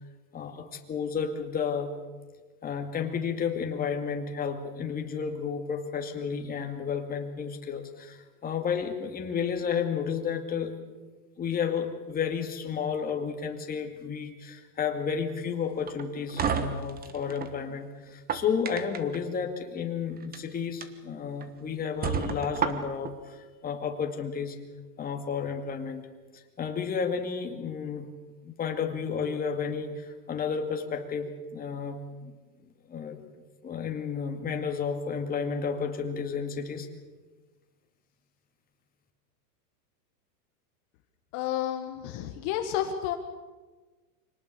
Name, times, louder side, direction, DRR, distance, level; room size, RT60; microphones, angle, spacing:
voice 1, 0.3-1.9 2.6-10.9 11.4-24.6 25.0-26.0 26.3-28.1 28.4-32.3 32.9-33.2 33.6-36.9, left 6 dB, 20° left, 4 dB, 2.3 m, -32 dB
sound 1, 15.9-17.5 18.1-19.2 20.2-20.4 20.8-20.9 21.4-21.5 22.0-23.1, right 6 dB, 20° right, 1.3 m, -31 dB
voice 2, 41.3-43.2, left 11 dB, 45° left, 6 dB, 1.7 m, -31 dB
25.5 x 19.0 x 6.8 m, 1.3 s
supercardioid pair, 140°, 46 cm